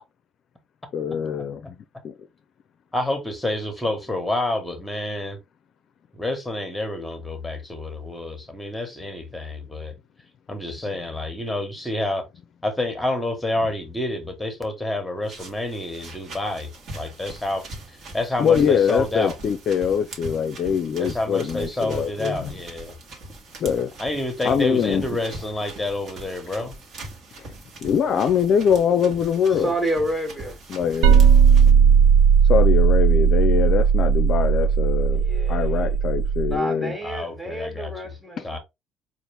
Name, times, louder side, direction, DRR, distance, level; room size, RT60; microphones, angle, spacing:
voice 1, 0.9-1.8 2.0-2.1 18.4-22.5 23.6-23.9 24.4-25.0 27.8-29.7 30.7-31.3 32.5-35.2 35.5-36.9, left 7 dB, 45° left, 0.5 m, -23 dB
voice 2, 2.9-5.4 6.1-9.9 10.5-12.2 12.6-17.6 18.1-19.3 21.0-22.9 24.0-26.7 37.0-37.9 38.4-38.6, left 1 dB, 5° left, 1.1 m, -28 dB
sound 1, 15.2-31.7, right 2 dB, 50° right, 1.3 m, -41 dB
voice 3, 29.5-30.6 35.1-35.9 36.4-38.6, right 1 dB, 15° right, 1.4 m, -29 dB
sound 2, 31.0-36.6, right 7 dB, 80° right, 0.3 m, -16 dB
4.2 x 2.5 x 3.3 m
cardioid pair, 120°, 0 cm